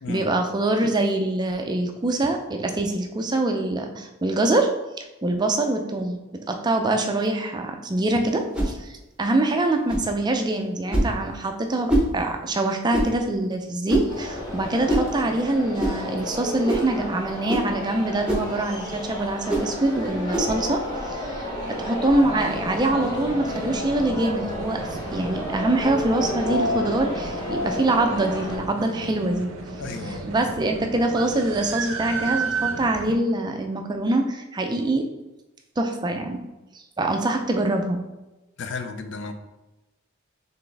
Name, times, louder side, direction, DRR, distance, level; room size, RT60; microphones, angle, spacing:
voice 1, 0.1-4.7 5.2-6.2 6.5-29.5 30.1-35.1 35.8-36.4 37.0-38.0, right 2 dB, 20° right, 4 dB, 0.4 m, -24 dB
sound 1, 8.5-8.8 9.9-10.1 10.9-11.2 11.9-12.1 12.9-13.2 13.9-14.2 14.9-15.1 15.8-16.0 16.7-16.9 17.5-17.7 18.3-18.5 19.5-19.7 20.3-20.5, right 1 dB, 5° right, 0.9 m, -23 dB
sound 2, 14.1-28.6, left 1 dB, 20° left, 1.0 m, -31 dB
sound 3, 22.4-33.2, right 4 dB, 85° right, 0.5 m, -34 dB
voice 2, 29.8-30.3 38.6-39.3, left 4 dB, 60° left, 8 dB, 0.4 m, -33 dB
4.1 x 3.4 x 3.3 m, 1.0 s
head